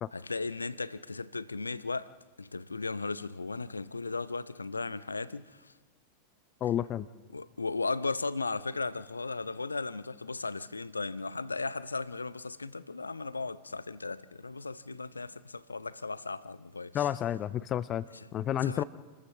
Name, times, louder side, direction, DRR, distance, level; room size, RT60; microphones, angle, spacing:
voice 1, 0.1-5.7 7.3-17.1 18.1-18.3 18.6-18.8, left 3 dB, 80° left, 0.6 m, -36 dB
voice 2, 6.6-7.1 16.9-18.0 18.3-18.8, left 11 dB, 30° left, 0.6 m, -30 dB
28.0 x 14.0 x 7.0 m
figure-of-eight pair, 90°, 0 cm